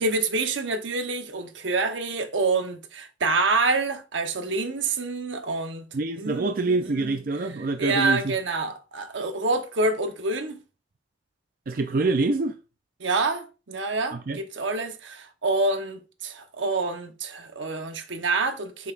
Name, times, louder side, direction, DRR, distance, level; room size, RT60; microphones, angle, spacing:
voice 1, 0.0-5.9 6.2-7.2 7.8-10.6 13.0-18.9, right 3 dB, 85° right, 1.0 m, -27 dB
voice 2, 5.9-8.4 11.7-12.6 14.1-14.4, right 3 dB, 50° right, 0.4 m, -26 dB
7.3 x 5.8 x 2.5 m
head